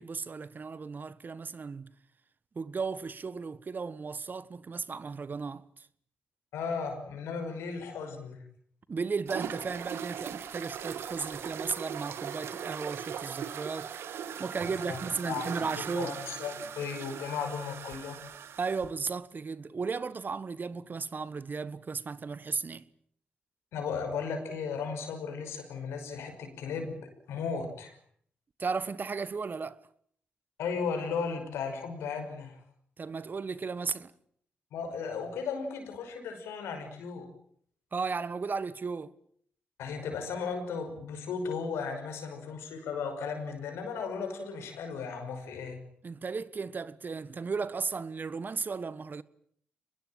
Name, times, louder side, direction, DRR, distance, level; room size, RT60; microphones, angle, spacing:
voice 1, 0.0-1.9 2.5-5.9 8.9-14.0 14.4-16.2 18.6-22.9 28.6-29.8 33.0-34.1 37.9-39.1 46.0-49.2, right 5 dB, 50° right, 1.4 m, -35 dB
voice 2, 6.5-8.4 14.8-15.0 15.2-18.2 23.7-28.0 30.6-32.6 34.7-37.3 39.8-45.8, left 5 dB, 85° left, 5.9 m, -35 dB
sound 1, 9.3-18.9, right 8 dB, 75° right, 1.8 m, -39 dB
24.0 x 21.5 x 9.0 m
supercardioid pair, 45°, 4 cm